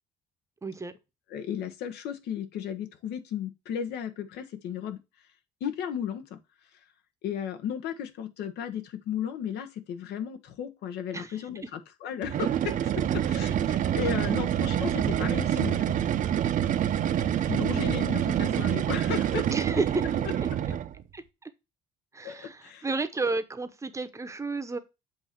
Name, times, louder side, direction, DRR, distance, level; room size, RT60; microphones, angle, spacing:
voice 1, 0.6-0.9 11.1-11.4 17.2-17.5 19.5-20.1 20.4-20.5 21.1-21.5 22.1-24.8, right 3 dB, 15° right, 0.8 m, -32 dB
voice 2, 1.3-5.0 5.6-6.4 7.2-15.9 17.5-19.5 22.2-22.9, left 8 dB, 75° left, 1.1 m, -35 dB
sound 1, 12.2-21.0, right 10 dB, 50° right, 0.6 m, -27 dB
7.8 x 2.8 x 5.8 m
cardioid pair, 110°, 17 cm